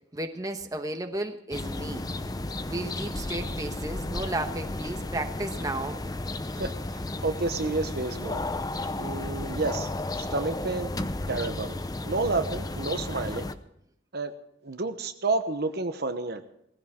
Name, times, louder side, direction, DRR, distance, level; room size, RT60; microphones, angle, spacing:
voice 1, 0.1-2.1 2.7-6.0, right 2 dB, 20° right, 5 dB, 1.1 m, -33 dB
sound 1, 1.5-13.5, left 2 dB, 20° left, 0.6 m, -33 dB
voice 2, 7.2-8.5 9.0-9.9 10.2-10.9 11.3-11.7 12.1-13.5 14.1-14.3 14.6-16.4, right 3 dB, 55° right, 8 dB, 1.0 m, -30 dB
19.0 x 15.5 x 3.7 m, 0.76 s
head